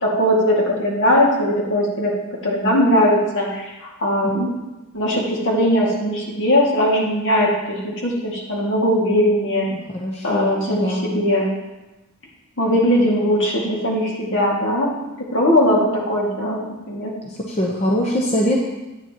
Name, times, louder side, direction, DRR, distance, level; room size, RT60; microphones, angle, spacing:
voice 1, 0.0-2.1 2.4-4.5 4.9-9.7 10.2-11.5 12.6-14.9 15.2-16.6 16.9-17.1, equal, 60° left, -3 dB, 2.2 m, -19 dB
voice 2, 9.9-11.1 17.5-18.6, equal, 30° left, -2 dB, 0.9 m, -22 dB
9.8 x 9.4 x 3.0 m, 1.1 s
head